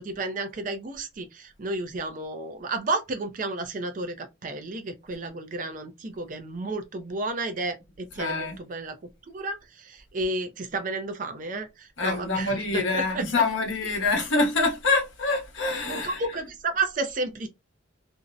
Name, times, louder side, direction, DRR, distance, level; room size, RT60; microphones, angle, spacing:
voice 1, 0.0-9.0 9.3-13.3 15.9-17.5, right 2 dB, 40° right, 0.4 m, -32 dB
voice 2, 8.2-8.6 12.0-16.2, left 3 dB, 70° left, 0.9 m, -25 dB
2.6 x 2.0 x 2.4 m
head